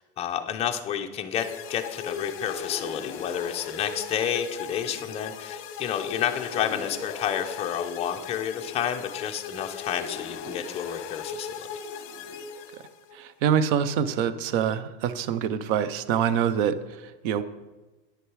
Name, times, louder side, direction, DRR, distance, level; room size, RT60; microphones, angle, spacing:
voice 1, 0.2-1.4 1.7-11.8, left 9 dB, 20° left, 4 dB, 0.5 m, -30 dB
sound 1, 1.3-13.2, left 5 dB, 45° left, 0.9 m, -37 dB
voice 2, 13.1-17.4, right 8 dB, 60° right, 14 dB, 0.6 m, -25 dB
9.6 x 6.5 x 4.7 m, 1.2 s
supercardioid pair, 145°, 30 cm